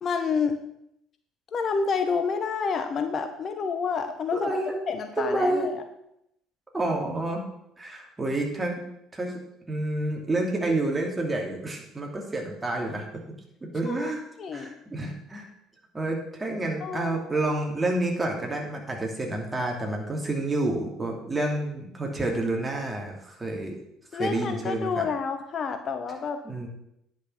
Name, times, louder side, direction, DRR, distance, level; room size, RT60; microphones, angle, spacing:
voice 1, 0.0-0.6 1.5-4.6 4.9-5.8 13.9-14.1 14.4-14.7 16.8-17.2 24.1-26.4, left 5 dB, 45° left, 8 dB, 0.9 m, -29 dB
voice 2, 4.3-4.8 5.2-5.7 6.7-7.4 7.8-8.8 9.1-9.4 9.7-13.1 13.7-14.2 14.5-15.5 15.9-23.8 24.1-25.0 26.4-26.7, right 2 dB, 20° right, 0 dB, 2.7 m, -29 dB
9.8 x 6.4 x 5.7 m, 0.78 s
figure-of-eight pair, 55°, 0 cm